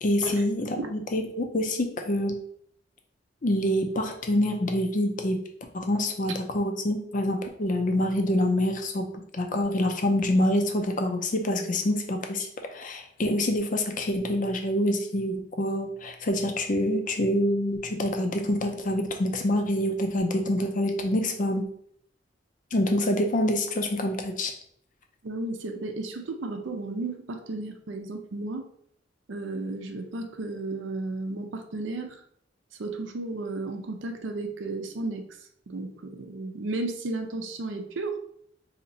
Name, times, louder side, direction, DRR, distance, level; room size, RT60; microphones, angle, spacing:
voice 1, 0.0-2.4 3.4-5.4 5.7-9.1 9.3-21.6 22.7-24.5, left 1 dB, 45° left, 4 dB, 0.6 m, -26 dB
voice 2, 25.2-28.6 29.3-32.2 32.8-35.2 35.7-38.2, right 2 dB, 80° right, 5 dB, 0.5 m, -33 dB
2.9 x 2.6 x 4.1 m, 0.66 s
head